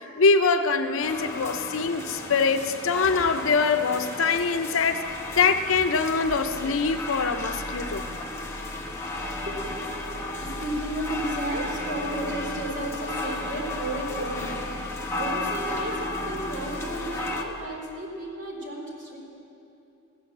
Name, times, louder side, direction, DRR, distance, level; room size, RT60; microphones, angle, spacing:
voice 1, 0.2-5.0 5.4-8.0, left 4 dB, 80° left, 8 dB, 0.7 m, -23 dB
sound 1, 1.0-17.4, left 2 dB, 15° left, 1.0 m, -34 dB
sound 2, 5.1-17.7, left 1 dB, 90° right, 3.9 m, -43 dB
voice 2, 9.5-19.2, right 1 dB, 55° right, -3 dB, 3.6 m, -33 dB
15.0 x 11.0 x 7.4 m, 2.8 s
head